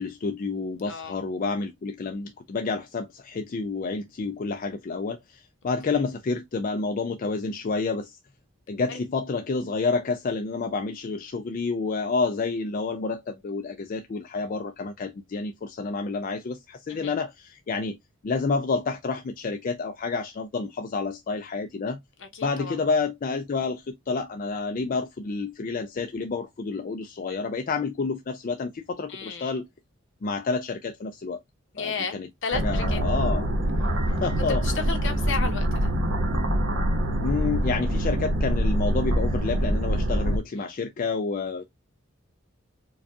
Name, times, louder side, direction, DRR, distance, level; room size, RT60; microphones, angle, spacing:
voice 1, 0.0-8.2 8.7-18.0 18.2-22.0 22.4-29.7 30.2-31.4 31.8-32.3 32.5-33.5 34.1-34.6 37.2-41.6, left 4 dB, 40° left, 0.4 m, -29 dB
voice 2, 0.9-1.2 8.9-9.0 16.9-17.1 22.2-22.8 29.1-29.5 31.7-33.0 34.5-35.9 40.6-40.7, left 5 dB, 65° left, 1.0 m, -33 dB
sound 1, 32.5-40.4, equal, 60° right, 0.9 m, -25 dB
4.7 x 2.3 x 2.6 m
head